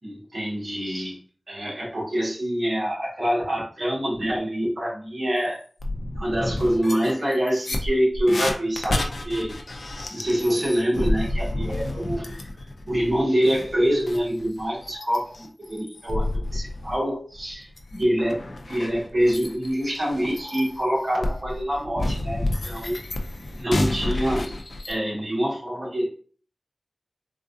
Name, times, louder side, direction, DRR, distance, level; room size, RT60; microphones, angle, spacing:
voice 1, 0.0-1.2 1.5-5.6 6.2-9.6 10.1-12.3 12.6-23.0 23.6-24.6 24.9-26.1, equal, 55° right, -5 dB, 1.7 m, -25 dB
sound 1, 5.4-5.5 5.8-17.0 17.3-24.9, left 1 dB, 75° left, 0.6 m, -30 dB
3.9 x 2.5 x 2.6 m, 0.42 s
wide cardioid pair, 75°, 0 cm